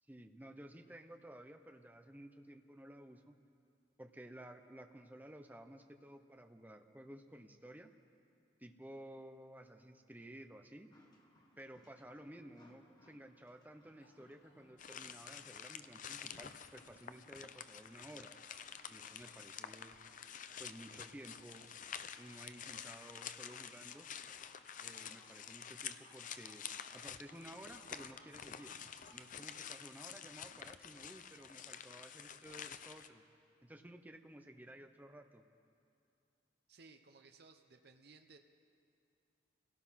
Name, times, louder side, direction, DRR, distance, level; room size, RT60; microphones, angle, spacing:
voice 1, 0.1-3.3 4.0-7.9 8.6-10.9 11.6-18.3 18.9-20.0 20.6-21.7 22.2-24.1 24.8-26.6 26.9-28.7 29.1-33.2 33.6-35.4, right 1 dB, 10° right, 6 dB, 0.9 m, -54 dB
sound 1, 10.9-17.4, left 1 dB, 20° left, 1.8 m, -68 dB
sound 2, 14.0-30.2, left 1 dB, 70° left, 3.1 m, -69 dB
sound 3, 14.8-33.1, left 8 dB, 45° left, 0.6 m, -49 dB
voice 2, 36.7-38.4, right 4 dB, 55° right, 5 dB, 0.9 m, -60 dB
28.5 x 17.5 x 5.8 m, 2.5 s
head